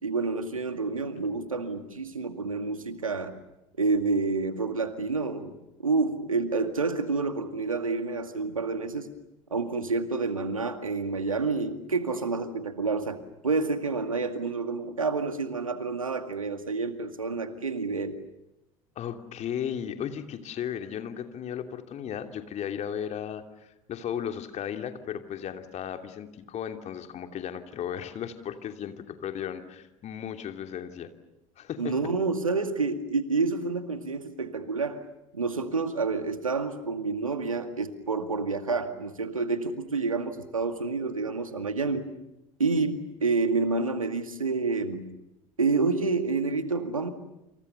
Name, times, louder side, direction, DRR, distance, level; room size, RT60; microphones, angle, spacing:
voice 1, 0.0-3.4 3.8-9.1 9.5-13.2 13.4-18.2 31.8-35.0 35.3-42.1 42.6-45.0 45.6-47.1, right 4 dB, 85° right, 9 dB, 2.2 m, -28 dB
voice 2, 19.0-31.1 31.6-31.9, left 9 dB, 40° left, 6 dB, 3.0 m, -35 dB
28.5 x 27.0 x 6.9 m, 0.90 s
figure-of-eight pair, 70°, 17 cm